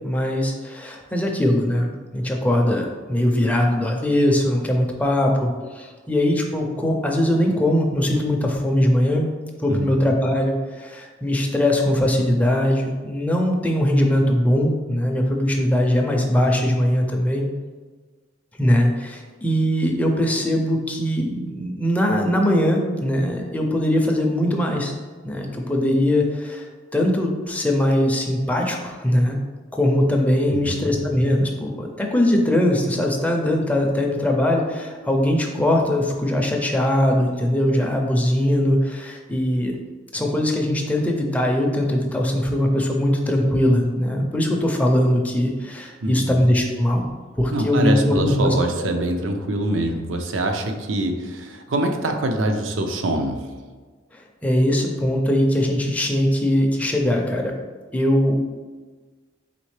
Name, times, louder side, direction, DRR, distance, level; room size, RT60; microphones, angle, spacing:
voice 1, 0.0-9.3 9.6-17.5 18.6-24.9 25.2-26.7 26.9-29.4 29.7-39.7 40.1-47.0 47.4-48.5 54.1-57.5 57.9-58.4, left 1 dB, 10° left, 1 dB, 0.5 m, -21 dB
voice 2, 30.5-30.9 46.0-46.3 47.5-53.5, right 1 dB, 75° right, 4 dB, 0.5 m, -24 dB
4.1 x 3.6 x 3.2 m, 1.4 s
head